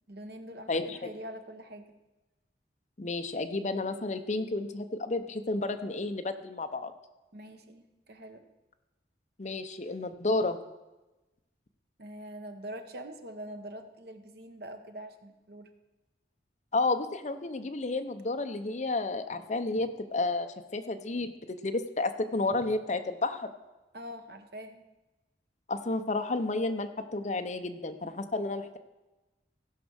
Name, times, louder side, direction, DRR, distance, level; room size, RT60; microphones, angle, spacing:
voice 1, 0.1-1.8 7.3-8.4 12.0-15.7 23.9-24.8, right 1 dB, 60° right, 7 dB, 1.1 m, -44 dB
voice 2, 0.7-1.1 3.0-6.9 9.4-10.6 16.7-21.3 21.6-23.5 25.7-28.8, left 2 dB, 40° left, 7 dB, 0.7 m, -31 dB
16.0 x 5.3 x 6.3 m, 1.1 s
head